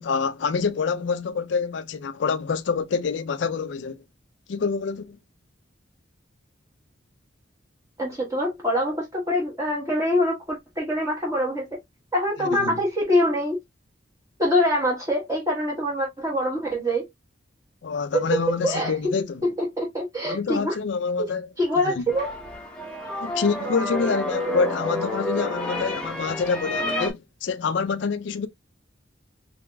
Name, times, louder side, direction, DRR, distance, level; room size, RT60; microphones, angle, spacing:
voice 1, 0.0-4.0 4.5-5.2 12.4-12.8 17.8-19.4 20.3-21.5 21.8-22.0 23.2-28.5, left 5 dB, 65° left, 0.4 m, -26 dB
voice 2, 8.0-11.8 12.1-13.6 14.4-17.1 18.1-18.9 19.4-20.7 21.2-21.3 21.6-22.3, equal, 15° right, 1.2 m, -24 dB
sound 1, 22.1-27.1, left 1 dB, 5° left, 0.8 m, -29 dB
3.7 x 3.5 x 2.2 m
head